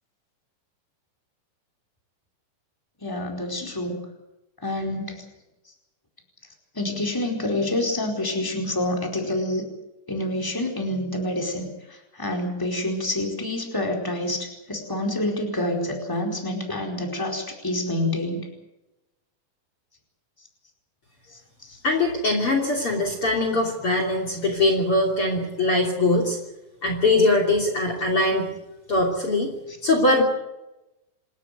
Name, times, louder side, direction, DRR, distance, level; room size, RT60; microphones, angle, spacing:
voice 1, 3.0-4.0 4.6-5.2 6.7-9.6 10.1-18.4 21.6-21.8, left 1 dB, 5° left, 1 dB, 4.4 m, -27 dB
voice 2, 21.8-26.4 26.8-28.5 28.9-29.5 29.8-30.2, left 2 dB, 40° left, 3 dB, 3.8 m, -22 dB
27.5 x 13.0 x 9.3 m, 0.96 s
omnidirectional pair, 3.9 m